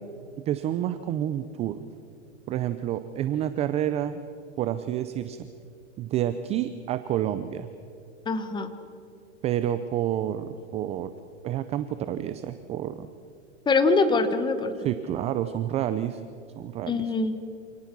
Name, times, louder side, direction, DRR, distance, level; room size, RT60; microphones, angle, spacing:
voice 1, 0.5-1.8 2.5-4.2 4.6-5.5 6.0-7.7 9.4-11.1 11.4-13.1 14.8-16.2 16.6-17.0, right 11 dB, 20° right, 12 dB, 0.5 m, -29 dB
voice 2, 8.2-8.7 13.7-14.7 16.9-17.4, left 3 dB, 10° left, 10 dB, 1.3 m, -23 dB
27.0 x 18.5 x 6.0 m, 2.7 s
hypercardioid pair, 135°, 36 cm